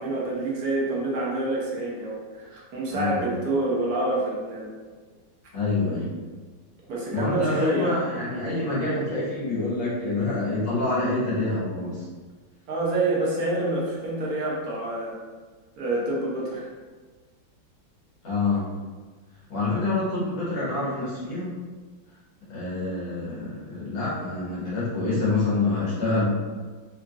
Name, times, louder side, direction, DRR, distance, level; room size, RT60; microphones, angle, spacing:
voice 1, 0.0-4.7 6.9-8.0 12.7-15.2 15.8-16.7, right 2 dB, 60° right, -5 dB, 1.1 m, -27 dB
voice 2, 2.9-3.2 5.5-6.1 7.1-12.1 18.2-18.6 19.5-21.6 22.5-26.2, left 2 dB, 90° left, -9 dB, 2.3 m, -26 dB
4.5 x 2.8 x 2.5 m, 1.4 s
omnidirectional pair, 2.1 m